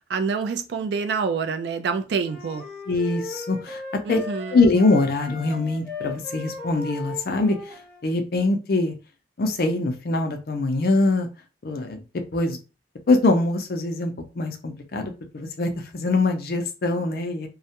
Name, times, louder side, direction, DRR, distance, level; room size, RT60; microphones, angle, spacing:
voice 1, 0.0-2.7 4.0-4.6, right 5 dB, 65° right, 0.3 m, -27 dB
sound 1, 2.2-8.0, left 3 dB, 10° left, 0.9 m, -37 dB
voice 2, 2.9-3.8 4.1-4.2 4.5-7.6 8.0-8.9 9.4-11.3 11.6-12.0 12.3-12.6 13.1-17.5, left 2 dB, 55° left, 0.4 m, -23 dB
2.2 x 2.1 x 2.8 m
head